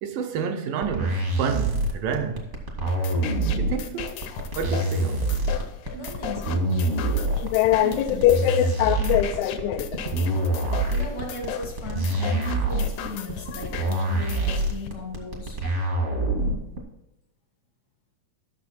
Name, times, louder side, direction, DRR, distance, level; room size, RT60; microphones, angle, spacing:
voice 1, 0.0-2.5 3.6-4.1 4.6-5.4, right 7 dB, 75° right, 2.1 m, -29 dB
sound 1, 0.8-16.8, right 2 dB, 45° right, 0.9 m, -25 dB
sound 2, 2.9-14.9, left 8 dB, 75° left, 2.3 m, -37 dB
voice 2, 5.9-6.7 7.7-8.4 10.4-10.5 10.9-15.6, left 1 dB, 50° left, 1.1 m, -37 dB
voice 3, 7.4-10.0 13.5-13.6, left 12 dB, 90° left, 2.7 m, -22 dB
12.0 x 6.6 x 4.2 m
omnidirectional pair, 4.4 m